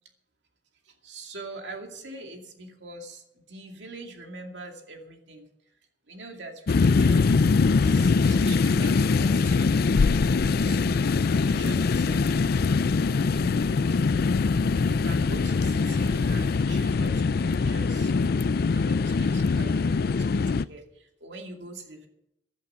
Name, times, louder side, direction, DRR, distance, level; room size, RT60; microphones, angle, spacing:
voice 1, 0.8-5.5 6.1-10.8 11.3-12.9 13.2-14.2 14.8-18.1 18.7-22.1, right 1 dB, 70° right, 3 dB, 2.4 m, -43 dB
sound 1, 6.7-20.6, left 4 dB, 60° left, 0.4 m, -23 dB
15.5 x 11.0 x 5.7 m, 0.83 s
head